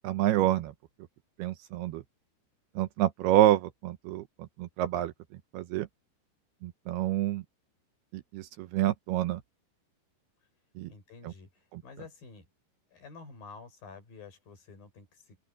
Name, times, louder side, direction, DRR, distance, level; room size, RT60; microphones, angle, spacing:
voice 1, 0.0-0.7 1.4-2.0 2.8-5.1 5.5-5.9 6.6-7.4 8.1-9.4 10.8-10.9 11.2-11.3 11.7-11.8, right 14 dB, 75° right, 2.6 m, -28 dB
voice 2, 10.9-12.5 12.9-15.4, left 4 dB, 55° left, 6.8 m, -50 dB
open air
omnidirectional pair, 5.0 m